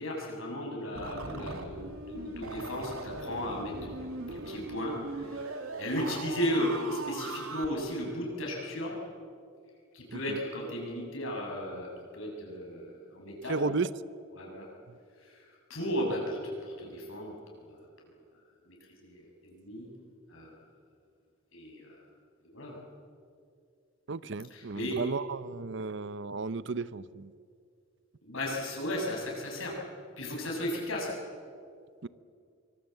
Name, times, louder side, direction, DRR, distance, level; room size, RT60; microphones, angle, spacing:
voice 1, 0.0-8.9 9.9-13.7 14.3-14.7 15.2-17.8 18.7-19.9 20.3-20.6 21.5-22.0 22.5-22.8 24.5-25.0 28.2-29.8 30.2-31.1, equal, 70° left, -1 dB, 7.1 m, -35 dB
sound 1, 0.9-7.7, right 2 dB, 90° right, 2.4 m, -40 dB
voice 2, 13.5-13.9 24.1-27.3 32.0-32.1, right 4 dB, 60° right, 17 dB, 0.7 m, -34 dB
25.0 x 24.0 x 7.9 m, 2.3 s
head